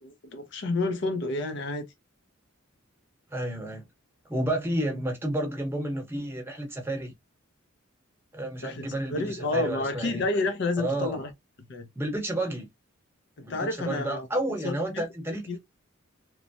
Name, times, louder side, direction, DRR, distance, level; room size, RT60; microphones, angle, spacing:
voice 1, 0.0-1.9 8.6-11.3 11.7-11.9 13.4-14.3 14.6-15.0 15.5-15.6, left 2 dB, 60° left, 0.6 m, -30 dB
voice 2, 3.3-3.9 4.3-7.1 8.3-10.2 10.8-11.2 12.0-12.7 13.4-15.6, right 1 dB, 10° right, 1.0 m, -31 dB
3.0 x 2.1 x 2.5 m
head